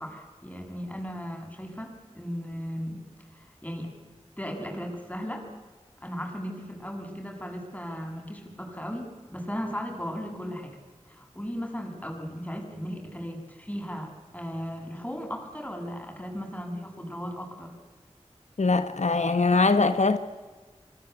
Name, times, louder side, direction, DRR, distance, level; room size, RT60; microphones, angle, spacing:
voice 1, 0.0-3.0 3.3-3.9 4.4-5.5 6.0-10.8 11.0-17.7, equal, 15° left, 7.9 m, -36 dB
voice 2, 18.6-20.2, left 3 dB, 85° left, 1.4 m, -22 dB
28.0 x 25.0 x 8.2 m
wide cardioid pair, 50°, 12 cm